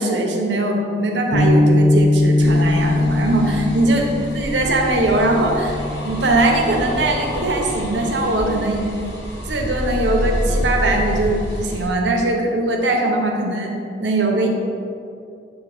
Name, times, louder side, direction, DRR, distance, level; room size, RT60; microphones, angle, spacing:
voice 1, 0.0-8.8 9.5-13.7 14.0-14.5, right 2 dB, 85° right, 1 dB, 0.9 m, -20 dB
sound 1, 1.3-7.7, left 1 dB, 45° left, 1.3 m, -20 dB
sound 2, 2.4-11.9, equal, 75° left, 1.3 m, -28 dB
8.2 x 2.8 x 4.9 m, 2.5 s
head